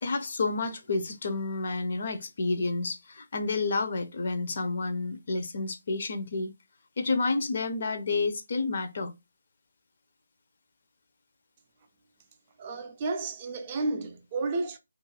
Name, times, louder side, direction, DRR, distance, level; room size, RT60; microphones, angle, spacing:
voice 1, 0.0-6.5 7.0-9.1, left 3 dB, 50° left, 0.5 m, -30 dB
voice 2, 12.6-14.8, right 3 dB, 30° right, 0.4 m, -32 dB
2.4 x 2.1 x 3.2 m
figure-of-eight pair, 155°, 0 cm